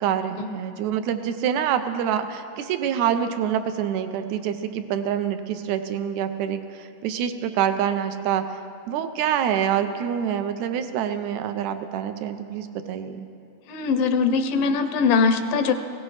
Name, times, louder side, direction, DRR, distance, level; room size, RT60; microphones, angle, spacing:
voice 1, 0.0-8.4 8.9-13.2, right 9 dB, 85° right, 9 dB, 1.6 m, -26 dB
voice 2, 13.7-15.7, left 5 dB, 90° left, 8 dB, 2.5 m, -21 dB
19.0 x 17.0 x 3.2 m, 2.7 s
omnidirectional pair, 3.8 m